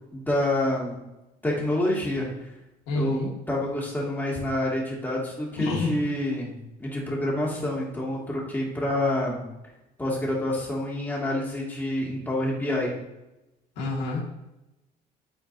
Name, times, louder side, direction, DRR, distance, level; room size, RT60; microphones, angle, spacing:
voice 1, 0.1-1.0 1.4-2.3 2.9-6.5 6.8-9.4 10.0-12.9, left 1 dB, 10° left, -4 dB, 2.4 m, -27 dB
voice 2, 2.9-3.3 5.6-5.9 13.8-14.2, left 2 dB, 90° left, -3 dB, 2.2 m, -27 dB
8.8 x 4.5 x 2.8 m, 0.96 s
cardioid pair, 110°, 17 cm